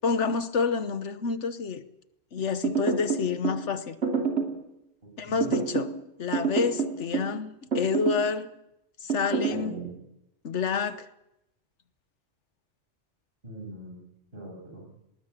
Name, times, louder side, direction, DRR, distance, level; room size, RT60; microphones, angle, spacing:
voice 1, 0.0-1.8 2.3-4.0 5.2-5.9 6.2-8.5 9.0-9.8 10.4-11.1, left 5 dB, 85° left, 1.5 m, -28 dB
sound 1, 2.6-3.6 4.0-4.6 5.4-6.0 6.3-7.4 7.7-8.3 9.1-9.6, right 5 dB, 75° right, 3.2 m, -27 dB
voice 2, 5.0-5.5 9.5-9.9 13.4-14.0 14.3-14.8, right 2 dB, 50° right, 7.1 m, -41 dB
19.5 x 19.0 x 8.3 m
omnidirectional pair, 1.2 m